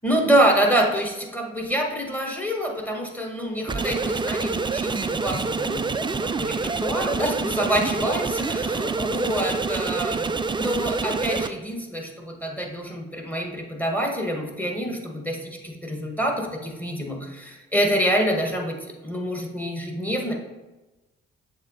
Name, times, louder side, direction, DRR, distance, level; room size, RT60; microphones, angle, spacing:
voice 1, 0.0-18.8 19.0-20.3, right 1 dB, 5° left, 1 dB, 1.5 m, -26 dB
sound 1, 3.7-11.5, right 4 dB, 15° right, 0.3 m, -27 dB
7.1 x 3.5 x 4.0 m, 1.1 s
hypercardioid pair, 40°, 32 cm